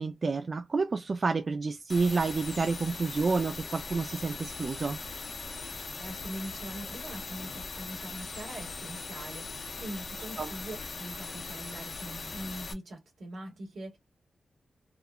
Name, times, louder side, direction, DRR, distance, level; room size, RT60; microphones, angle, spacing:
voice 1, 0.0-5.0 10.4-10.5, right 4 dB, 45° right, 0.3 m, -29 dB
sound 1, 1.9-12.7, left 4 dB, 55° left, 0.6 m, -40 dB
voice 2, 6.0-14.0, right 1 dB, 70° right, 1.6 m, -42 dB
3.5 x 2.3 x 2.3 m
wide cardioid pair, 110°, 0 cm